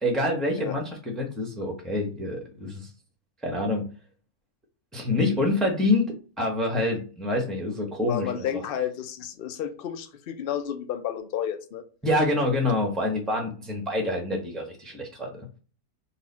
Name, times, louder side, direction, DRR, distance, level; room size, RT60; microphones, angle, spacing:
voice 1, 0.0-2.9 3.4-3.9 4.9-8.6 12.0-15.5, left 2 dB, ahead, 1 dB, 0.7 m, -26 dB
voice 2, 8.1-11.8, left 9 dB, 60° left, 7 dB, 0.6 m, -31 dB
4.2 x 2.3 x 3.9 m, 0.38 s
omnidirectional pair, 1.5 m